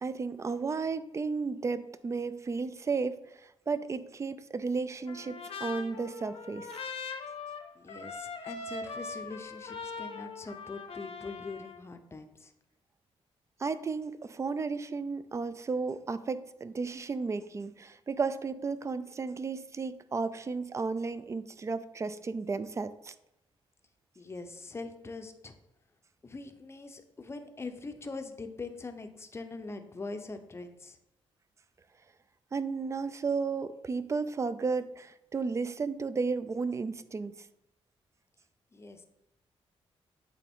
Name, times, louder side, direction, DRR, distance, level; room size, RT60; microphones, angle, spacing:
voice 1, 0.0-3.2 3.4-6.7 13.6-23.1 32.5-37.4, right 4 dB, 30° right, 14 dB, 0.3 m, -33 dB
Trumpet, 5.1-11.8, left 4 dB, 65° left, 0.7 m, -41 dB
voice 2, 7.7-12.5 24.2-25.6 26.2-31.0 38.7-39.0, left 3 dB, 25° left, 7 dB, 0.6 m, -42 dB
8.4 x 3.5 x 3.5 m, 0.86 s
cardioid pair, 110°, 11 cm